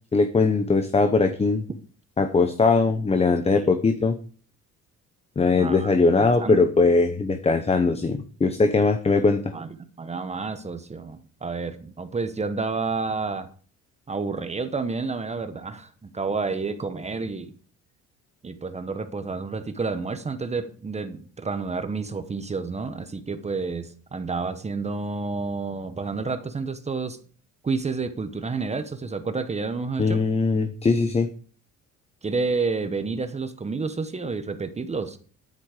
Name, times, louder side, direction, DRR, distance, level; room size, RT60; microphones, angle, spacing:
voice 1, 0.1-1.6 2.2-4.2 5.4-9.5 30.0-31.3, left 3 dB, 20° left, 8 dB, 0.9 m, -20 dB
voice 2, 5.6-5.9 6.2-6.7 9.5-9.7 10.0-13.5 14.1-17.5 18.4-27.2 27.6-30.2 32.2-35.2, right 4 dB, 20° right, 9 dB, 1.0 m, -30 dB
11.0 x 9.8 x 5.0 m, 0.41 s
cardioid pair, 135°, 31 cm